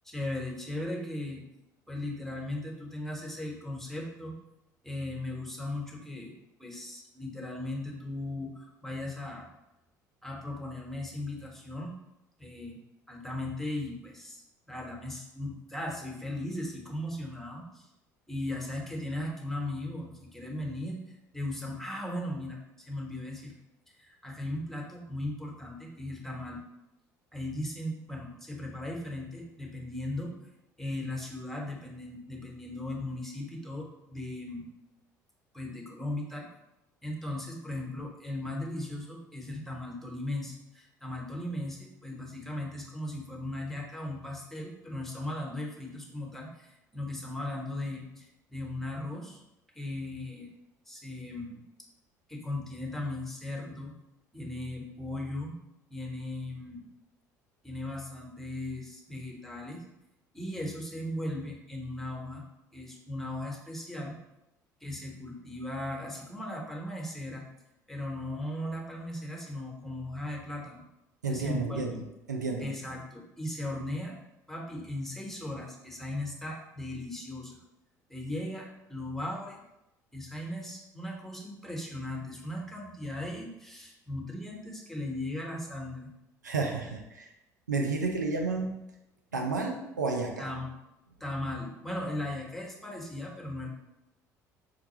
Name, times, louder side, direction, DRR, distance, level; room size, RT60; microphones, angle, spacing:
voice 1, 0.0-1.4 1.9-4.3 4.8-6.3 6.6-9.5 10.2-11.9 12.4-12.8 13.1-14.4 14.7-17.9 18.3-21.0 21.3-23.5 24.0-26.6 27.3-30.3 30.8-34.7 35.5-36.5 37.0-49.4 49.7-50.5 50.9-51.6 52.3-53.9 54.3-55.6 55.9-56.9 57.6-59.8 60.3-62.4 62.7-64.2 64.8-67.4 67.9-70.8 71.3-72.0 72.6-74.2 74.5-77.6 78.1-79.6 80.1-86.1 90.4-90.7 91.2-93.7, left 1 dB, 5° left, -1 dB, 1.0 m, -37 dB
voice 2, 71.2-72.7 86.4-87.3 87.7-88.8 89.3-90.5, right 3 dB, 85° right, 2 dB, 0.4 m, -31 dB
4.7 x 2.2 x 3.0 m, 0.91 s
figure-of-eight pair, 60°, 9 cm